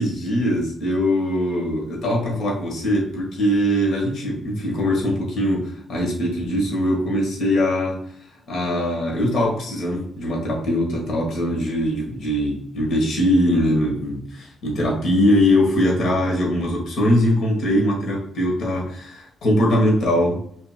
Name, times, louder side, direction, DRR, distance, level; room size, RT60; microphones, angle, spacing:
voice 1, 0.0-8.0 8.5-20.4, left 1 dB, 70° left, -1 dB, 1.5 m, -21 dB
5.3 x 3.0 x 2.4 m, 0.63 s
hypercardioid pair, 45°, 0 cm